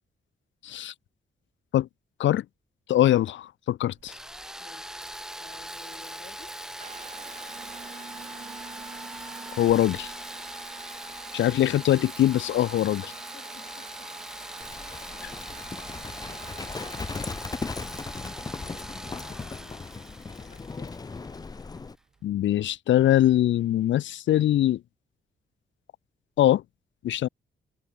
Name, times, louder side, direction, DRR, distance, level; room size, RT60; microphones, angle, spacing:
voice 1, 0.6-0.9 1.7-1.9 2.2-2.4 2.9-4.1 9.6-10.1 11.3-13.1 22.2-24.8 26.4-26.6 27.0-27.3, left 12 dB, 70° left, 0.4 m, -22 dB
Water tap faucet / Bathtub (filling or washing) / Trickle dribble, 3.9-22.8, right 6 dB, 40° right, 1.2 m, -48 dB
sound 1, 4.1-21.8, equal, 5° right, 1.1 m, -41 dB
voice 2, 4.6-5.1 5.4-6.6 13.3-14.1 14.8-15.4 16.5-17.8 18.2-20.9, left 6 dB, 50° left, 6.1 m, -54 dB
Livestock farm animals working animals, 14.6-22.0, left 4 dB, 20° left, 0.5 m, -37 dB
wide cardioid pair, 160°, 20 cm